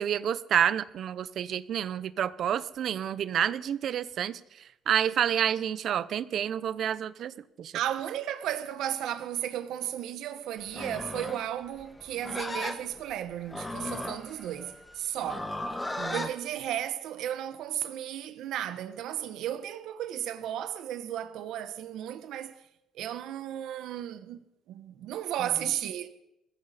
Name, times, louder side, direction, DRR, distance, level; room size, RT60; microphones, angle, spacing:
voice 1, 0.0-4.4 4.9-7.3 7.6-7.7 16.0-16.2, right 9 dB, 55° right, 0.7 m, -29 dB
voice 2, 7.7-15.5 16.1-22.5 22.9-24.4 24.7-26.1, right 11 dB, 75° right, 1.0 m, -34 dB
Livestock farm animals working animals, 10.7-16.3, left 1 dB, 10° left, 1.3 m, -36 dB
21.5 x 15.5 x 4.2 m
cardioid pair, 140°, 0 cm